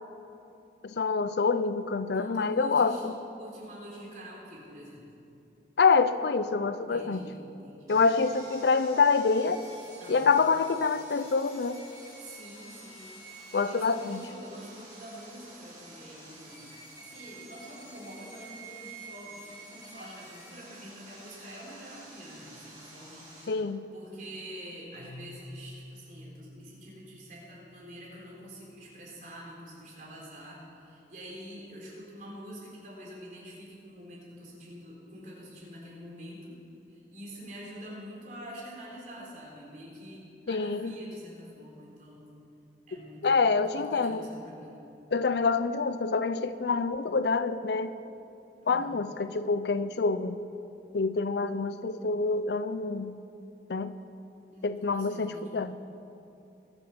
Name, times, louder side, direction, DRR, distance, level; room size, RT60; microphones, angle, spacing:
voice 1, 0.8-3.1 5.8-7.2 7.9-9.6 10.1-11.8 13.5-14.2 23.5-23.9 40.5-40.9 43.2-44.2 45.1-47.9 48.7-50.4 50.9-53.1 53.7-53.9 54.6-55.8, left 4 dB, 70° left, 12 dB, 0.5 m, -26 dB
voice 2, 2.1-3.1 3.4-5.1 6.9-8.0 10.0-10.4 12.2-23.5 23.9-36.6 36.9-42.3 42.9-44.8 48.6-49.0 54.5-55.6, equal, 45° right, -4 dB, 3.9 m, -46 dB
Sawing, 7.9-23.4, right 2 dB, 20° right, 4.0 m, -49 dB
Keyboard (musical), 24.9-28.6, left 1 dB, 85° left, 3.5 m, -50 dB
21.5 x 8.0 x 5.8 m, 2.8 s
head